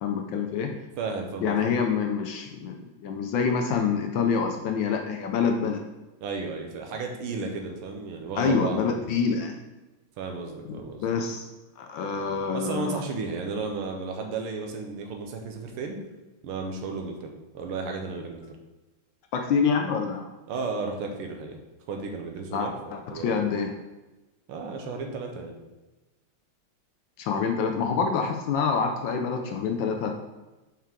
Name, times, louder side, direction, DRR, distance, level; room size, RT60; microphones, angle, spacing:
voice 1, 0.0-0.7 1.4-2.8 3.0-5.8 8.4-9.6 11.0-11.5 11.8-13.0 19.3-20.3 22.5-23.7 27.2-30.1, left 5 dB, 75° left, 4 dB, 1.2 m, -26 dB
voice 2, 1.0-1.7 6.2-8.9 10.2-11.1 12.5-16.0 16.4-18.4 20.5-21.6 21.9-23.5 24.5-25.5, right 4 dB, 90° right, 3 dB, 1.7 m, -34 dB
5.8 x 4.6 x 3.6 m, 1.1 s
omnidirectional pair, 2.3 m